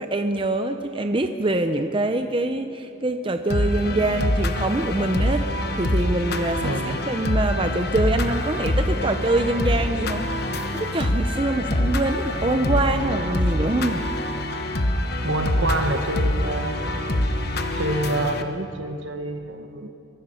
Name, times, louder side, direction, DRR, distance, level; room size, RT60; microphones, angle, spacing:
voice 1, 0.0-5.4 5.8-14.0, right 2 dB, 25° right, 7 dB, 0.6 m, -24 dB
sound 1, 3.5-18.4, left 1 dB, 50° left, 1.2 m, -25 dB
voice 2, 6.6-7.0 15.2-16.8 17.7-19.9, right 1 dB, 70° right, 6 dB, 1.6 m, -27 dB
23.0 x 21.5 x 5.7 m, 2.8 s
head